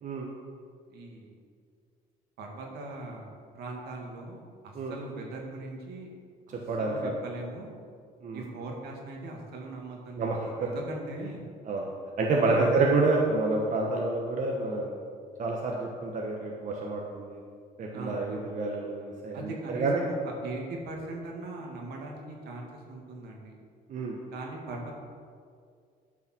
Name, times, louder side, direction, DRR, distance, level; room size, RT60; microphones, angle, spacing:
voice 1, 0.9-1.3 2.4-6.1 6.8-7.7 8.3-11.5 12.4-12.9 17.9-18.5 19.3-23.6 24.3-24.9, right 2 dB, 70° right, 0 dB, 2.2 m, -40 dB
voice 2, 6.7-7.1 8.2-8.4 10.2-10.7 11.7-11.9 12.2-14.9 15.4-17.4 17.8-20.0 23.9-24.2, right 3 dB, 50° right, -1 dB, 1.3 m, -28 dB
11.0 x 5.5 x 6.1 m, 2.2 s
cardioid pair, 110°, 17 cm